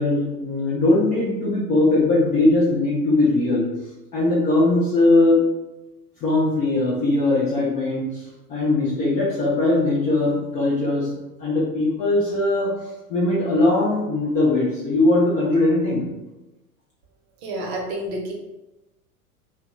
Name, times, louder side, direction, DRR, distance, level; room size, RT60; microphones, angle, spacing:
voice 1, 0.0-3.7 4.1-5.5 6.2-8.2 8.5-12.8 13.1-16.1, left 2 dB, 20° left, -7 dB, 0.3 m, -20 dB
voice 2, 17.4-18.3, right 1 dB, 45° right, 1 dB, 0.7 m, -29 dB
2.8 x 2.1 x 2.9 m, 1.0 s
figure-of-eight pair, 80°, 44 cm